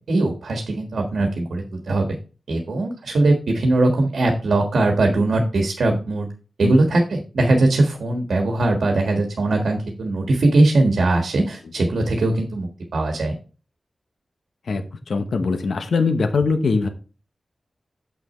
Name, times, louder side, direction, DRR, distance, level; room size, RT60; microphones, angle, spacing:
voice 1, 0.1-2.1 2.5-6.3 6.6-13.3, right 2 dB, 85° right, 3 dB, 1.5 m, -20 dB
voice 2, 14.6-16.9, left 4 dB, 80° left, 7 dB, 0.9 m, -22 dB
7.6 x 6.2 x 4.2 m, 0.35 s
wide cardioid pair, 130°, 0 cm